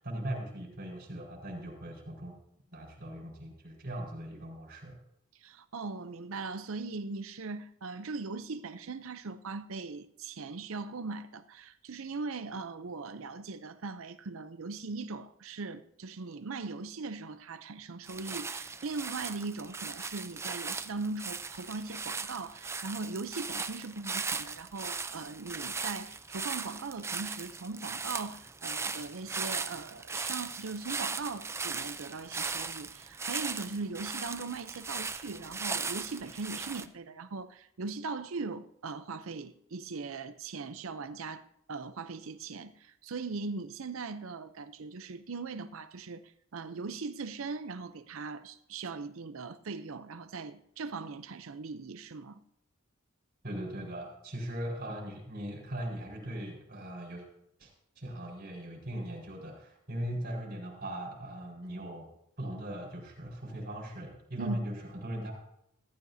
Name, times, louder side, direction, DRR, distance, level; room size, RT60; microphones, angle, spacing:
voice 1, 0.0-2.4 2.7-5.0 53.4-57.3 57.6-57.7 57.9-62.1 62.4-65.4, right 1 dB, 50° right, 4.8 m, -39 dB
voice 2, 5.4-41.4 41.7-52.4 64.4-64.6, right 4 dB, 70° right, 0.6 m, -40 dB
sound 1, 18.0-36.8, right 4 dB, 15° right, 0.5 m, -38 dB
15.5 x 14.0 x 2.7 m
head